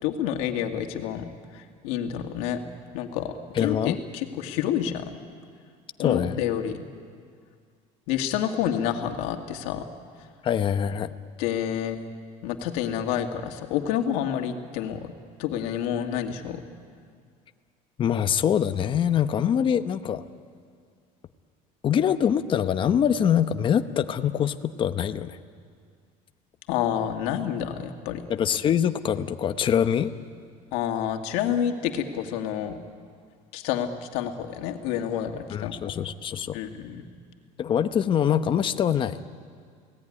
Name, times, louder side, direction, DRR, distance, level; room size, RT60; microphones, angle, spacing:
voice 1, 0.0-2.6 2.9-5.1 6.0-6.8 8.1-9.9 11.4-12.0 12.4-15.1 15.4-16.6 26.7-28.2 30.7-32.8 33.5-36.0 36.5-37.0, left 9 dB, 90° left, 5 dB, 2.1 m, -29 dB
voice 2, 3.5-4.0 6.0-6.4 10.4-11.1 18.0-20.2 21.8-25.4 28.3-30.1 35.5-36.6 37.6-39.2, left 9 dB, 35° left, 9 dB, 0.9 m, -24 dB
29.0 x 18.0 x 9.9 m, 2.1 s
cardioid pair, 150°, 15 cm